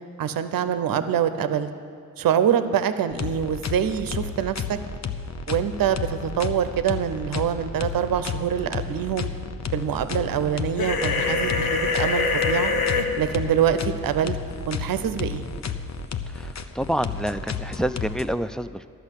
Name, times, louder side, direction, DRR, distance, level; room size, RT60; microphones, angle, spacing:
voice 1, 0.2-1.7 2.2-4.8 5.5-9.3 9.7-12.7 13.2-14.4 14.7-15.5, right 9 dB, 70° right, 11 dB, 0.7 m, -25 dB
sound 1, 3.1-18.3, left 6 dB, 50° left, 0.8 m, -32 dB
sound 2, 10.8-13.0, left 4 dB, 90° left, 1.0 m, -24 dB
voice 2, 16.7-18.9, equal, ahead, 11 dB, 0.4 m, -27 dB
11.5 x 6.3 x 8.2 m, 2.2 s
supercardioid pair, 45°, 35 cm